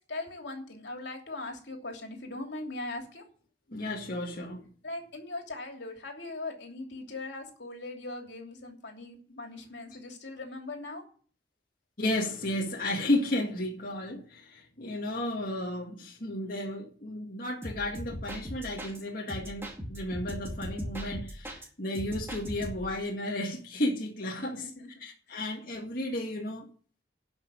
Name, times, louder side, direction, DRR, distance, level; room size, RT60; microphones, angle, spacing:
voice 1, 0.1-3.3 4.8-11.0 24.4-24.9, left 2 dB, 75° left, 3.0 m, -40 dB
voice 2, 3.7-4.6 12.0-24.7 25.0-26.7, left 1 dB, 50° left, 2.1 m, -33 dB
sound 1, 17.6-19.0 19.3-21.7 21.9-23.0, equal, 15° right, 2.2 m, -39 dB
11.5 x 6.0 x 9.1 m
head